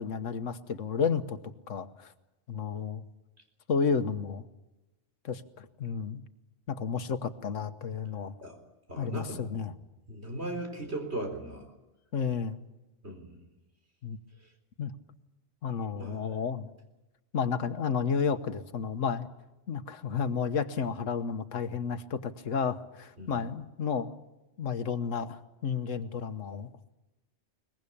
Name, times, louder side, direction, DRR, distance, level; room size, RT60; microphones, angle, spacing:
voice 1, 0.0-1.4 1.7-2.1 2.5-3.0 3.7-4.5 5.2-6.2 6.7-8.3 9.0-9.7 12.1-12.6 14.0-14.2 14.8-14.9 15.6-16.7 17.3-19.3 19.7-24.2 24.6-26.7, left 6 dB, 90° left, 11 dB, 1.5 m, -31 dB
voice 2, 8.9-9.4 10.1-11.7 13.0-13.4 16.0-16.2 23.2-23.3, right 1 dB, 60° right, 4 dB, 4.4 m, -37 dB
23.0 x 20.5 x 8.6 m, 1.0 s
omnidirectional pair, 1.3 m